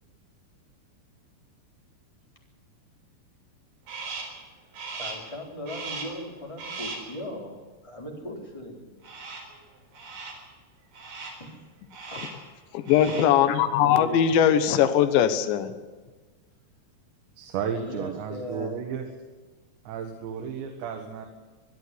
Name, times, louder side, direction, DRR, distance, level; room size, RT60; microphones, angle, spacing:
Crow, 3.9-4.4 4.7-5.3 5.7-6.2 6.6-7.1 9.0-9.6 9.9-10.5 10.9-11.5 11.9-12.5 12.8-13.4, right 4 dB, 50° right, 5.7 m, -38 dB
voice 1, 4.9-8.9 11.4-11.6 12.0-12.2 13.8-14.3 17.8-18.8, equal, 5° left, 0 dB, 3.3 m, -38 dB
voice 2, 12.7-15.7, left 9 dB, 75° left, 9 dB, 3.4 m, -20 dB
voice 3, 17.4-19.1 19.9-21.3, right 7 dB, 75° right, 4 dB, 3.6 m, -33 dB
24.0 x 11.5 x 9.8 m, 1.3 s
omnidirectional pair, 5.4 m